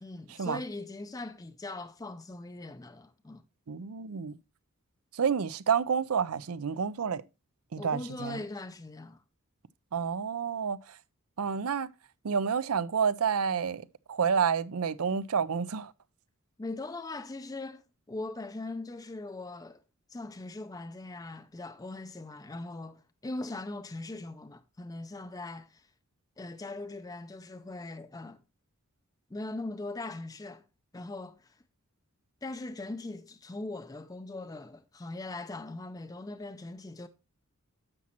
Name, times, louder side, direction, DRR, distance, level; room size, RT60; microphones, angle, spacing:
voice 1, 0.0-3.4 7.8-9.2 16.6-17.8 18.1-19.8 20.1-25.9 26.4-28.4 29.3-30.6 30.9-31.6 32.4-37.1, left 2 dB, 15° left, 0.4 m, -40 dB
voice 2, 3.7-4.4 5.1-7.2 7.7-8.4 9.9-11.0 11.4-11.9 12.2-15.9, right 6 dB, 75° right, 0.5 m, -29 dB
9.7 x 7.3 x 2.9 m
head